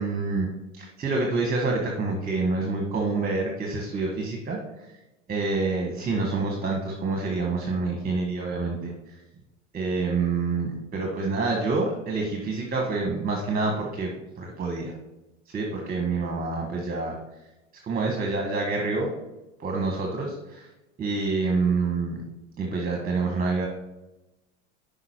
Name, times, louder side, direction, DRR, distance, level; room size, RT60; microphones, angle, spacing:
voice 1, 0.0-4.6 5.3-9.2 9.7-14.1 14.4-14.9 15.5-17.1 17.8-19.1 19.6-20.7 21.0-22.2 22.6-23.7, right 3 dB, 25° right, 1 dB, 1.4 m, -27 dB
5.9 x 5.2 x 4.5 m, 0.98 s
hypercardioid pair, 95°, 34 cm